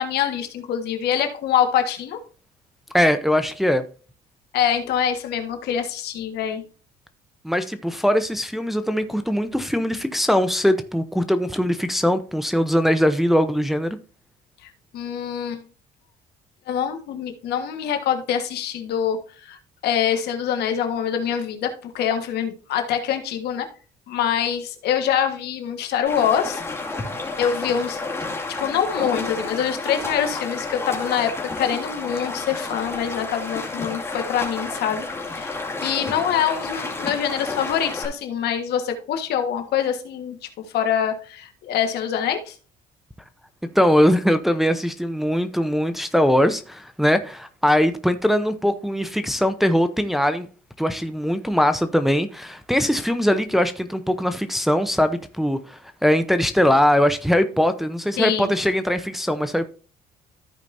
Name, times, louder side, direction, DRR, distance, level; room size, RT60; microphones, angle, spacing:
voice 1, 0.0-2.2 4.5-6.6 14.6-15.6 16.7-23.7 24.1-26.6 27.4-28.0 28.6-35.6 35.8-40.4 40.7-42.6 58.2-58.5, left 9 dB, 75° left, 1.6 m, -25 dB
voice 2, 2.9-3.8 7.4-14.0 43.7-50.5 50.8-59.7, equal, ahead, 0.7 m, -21 dB
Stream, 26.1-38.1, left 3 dB, 15° left, 2.3 m, -31 dB
14.0 x 5.0 x 2.7 m
cardioid pair, 110°, 17 cm